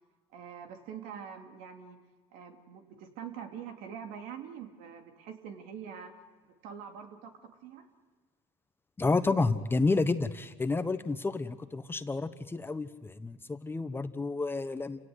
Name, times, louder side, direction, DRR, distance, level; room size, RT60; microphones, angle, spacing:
voice 1, 0.3-2.0 2.3-6.1 6.6-7.9, right 7 dB, 70° right, 4 dB, 3.2 m, -44 dB
voice 2, 9.0-15.0, left 3 dB, 15° left, 10 dB, 1.1 m, -30 dB
28.5 x 18.0 x 8.1 m, 1.4 s
supercardioid pair, 105°, 14 cm